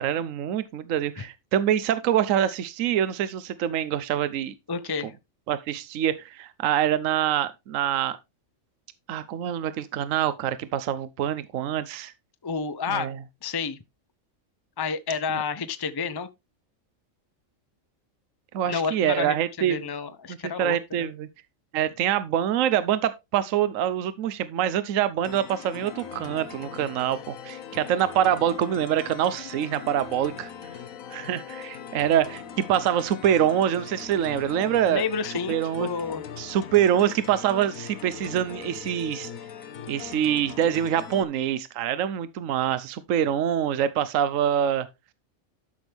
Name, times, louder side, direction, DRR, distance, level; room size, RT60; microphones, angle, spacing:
voice 1, 0.0-4.5 5.5-8.2 9.1-12.1 12.9-13.2 18.5-19.8 20.3-21.3 21.7-30.5 31.1-35.0 35.5-35.9 36.4-39.3 39.9-44.9, right 10 dB, 75° right, 1.1 m, -25 dB
voice 2, 4.7-5.1 12.4-13.1 13.4-13.8 14.8-16.3 18.7-21.1 34.9-36.2, left 5 dB, 25° left, 0.6 m, -30 dB
sound 1, 25.2-41.2, left 8 dB, 80° left, 1.4 m, -40 dB
12.0 x 6.1 x 3.4 m
omnidirectional pair, 1.4 m